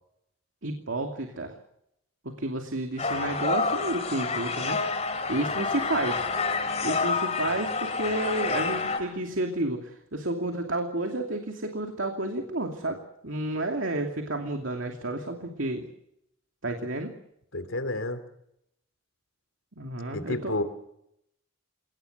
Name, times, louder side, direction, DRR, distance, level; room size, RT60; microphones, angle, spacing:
voice 1, 0.6-1.5 2.2-4.8 5.3-6.2 6.8-13.0 13.2-15.9 16.6-17.1 19.8-20.6, right 2 dB, 65° right, 3 dB, 2.7 m, -31 dB
sound 1, 3.0-9.0, left 4 dB, 30° left, 3.4 m, -28 dB
voice 2, 17.5-18.2 20.1-20.6, left 2 dB, 70° left, 10 dB, 3.1 m, -30 dB
29.0 x 18.5 x 8.1 m, 0.79 s
head